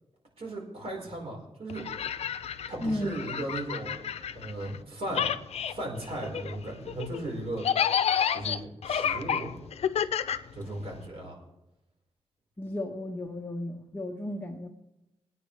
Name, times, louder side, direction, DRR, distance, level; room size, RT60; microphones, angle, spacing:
voice 1, 0.4-1.8 2.7-4.0 4.3-5.3 5.7-7.7 8.3-9.5 10.5-11.4, right 1 dB, 65° right, -1 dB, 4.8 m, -36 dB
sound 1, 1.7-4.8 5.1-11.1, left 8 dB, 70° left, 0.6 m, -30 dB
voice 2, 2.8-3.3 12.6-14.7, left 1 dB, 15° left, -2 dB, 1.4 m, -34 dB
21.0 x 9.4 x 3.4 m, 0.93 s
wide cardioid pair, 105°, 11 cm